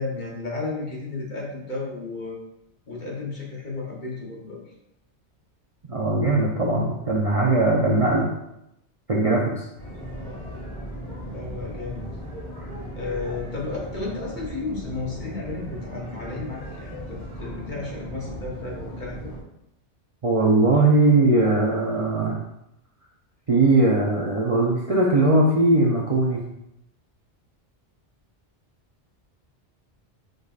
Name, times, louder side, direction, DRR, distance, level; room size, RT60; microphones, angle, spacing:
voice 1, 0.0-2.4 2.9-4.6 10.1-10.4 11.2-12.1 13.0-19.3, left 3 dB, 45° left, -3 dB, 1.1 m, -33 dB
voice 2, 5.9-8.3 9.1-9.6 20.2-22.4 23.5-26.4, right 2 dB, 45° right, -3 dB, 0.5 m, -20 dB
sound 1, 9.8-19.4, equal, 25° left, 1.9 m, -37 dB
5.0 x 3.9 x 2.4 m, 0.83 s
omnidirectional pair, 1.2 m